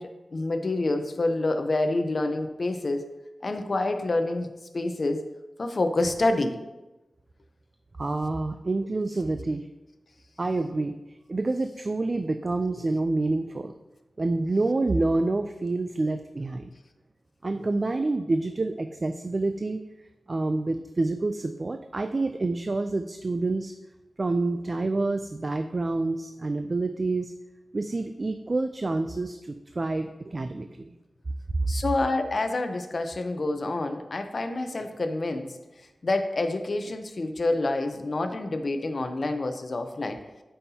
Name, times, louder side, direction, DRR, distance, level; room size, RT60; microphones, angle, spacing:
voice 1, 0.0-3.0 3.4-5.2 5.6-6.6 31.7-35.6 36.0-40.2, left 2 dB, 50° left, 7 dB, 0.7 m, -27 dB
voice 2, 8.0-9.7 10.4-10.9 11.3-13.7 14.2-16.7 17.4-19.8 20.3-23.7 24.2-27.3 27.7-31.0 31.6-31.7, right 2 dB, 40° right, 8 dB, 0.3 m, -28 dB
12.0 x 5.5 x 2.8 m, 1.1 s
wide cardioid pair, 95°, 0 cm